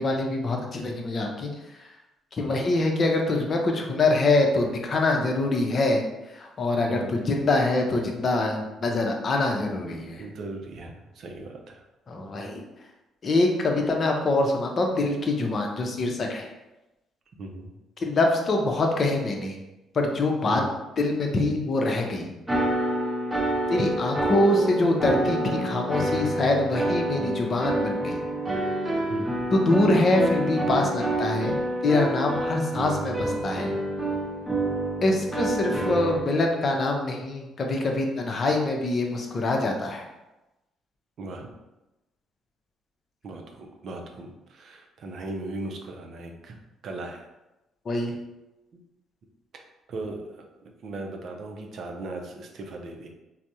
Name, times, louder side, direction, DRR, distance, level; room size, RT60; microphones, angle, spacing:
voice 1, 0.0-1.5 2.3-6.0 6.3-10.2 12.1-12.6 13.2-16.5 18.0-19.6 19.9-20.6 21.0-22.3 23.7-28.2 29.5-31.6 31.8-33.7 35.0-40.1 47.9-48.2, left 2 dB, 50° left, 2 dB, 0.6 m, -24 dB
voice 2, 6.9-7.2 10.2-11.8 17.4-17.7 20.5-20.7 29.1-29.3 35.7-35.9 41.2-41.5 43.2-46.6 46.8-47.3 49.5-49.6 49.9-50.5 50.8-53.1, right 2 dB, 60° right, 2 dB, 0.4 m, -37 dB
sound 1, 22.5-36.2, right 1 dB, 15° right, 0.7 m, -28 dB
3.3 x 2.0 x 2.7 m, 1.0 s
hypercardioid pair, 55°, 0 cm